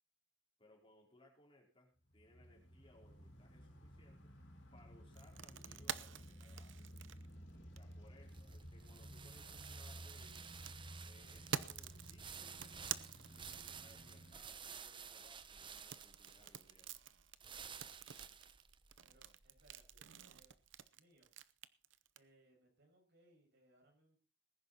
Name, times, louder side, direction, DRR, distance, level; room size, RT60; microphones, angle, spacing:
voice 1, 0.6-4.3 4.7-7.0 7.7-10.5 11.0-13.0 13.4-16.9, left 1 dB, 30° left, 0 dB, 4.6 m, -67 dB
sound 1, 2.1-14.4, equal, 80° left, 4.3 m, -55 dB
sound 2, 5.1-8.1 9.5-14.3 15.7-22.2, right 8 dB, 75° right, 0.8 m, -48 dB
sound 3, 7.5-20.6, right 6 dB, 25° right, 0.8 m, -54 dB
voice 2, 17.8-18.3 19.0-20.5 20.9-21.3 22.1-24.2, right 1 dB, 60° right, 2 dB, 6.3 m, -71 dB
20.0 x 10.5 x 4.3 m, 0.35 s
head